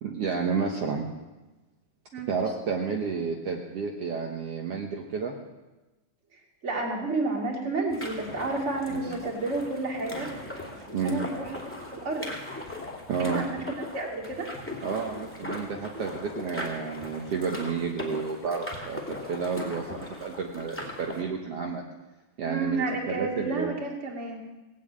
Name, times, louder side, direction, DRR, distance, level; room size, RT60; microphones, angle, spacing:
voice 1, 0.0-1.1 2.3-5.3 8.9-9.2 10.9-11.2 13.1-13.5 14.8-19.8 20.2-21.8 22.4-23.7, right 5 dB, 75° right, 1 dB, 1.4 m, -31 dB
voice 2, 6.3-10.3 10.9-11.6 11.9-12.3 13.2-13.6 13.9-14.5 22.5-24.4, right 2 dB, 25° right, 0 dB, 2.0 m, -31 dB
sound 1, 7.9-21.2, left 1 dB, 5° left, 1.7 m, -39 dB
18.0 x 8.7 x 8.7 m, 1.1 s
omnidirectional pair, 4.6 m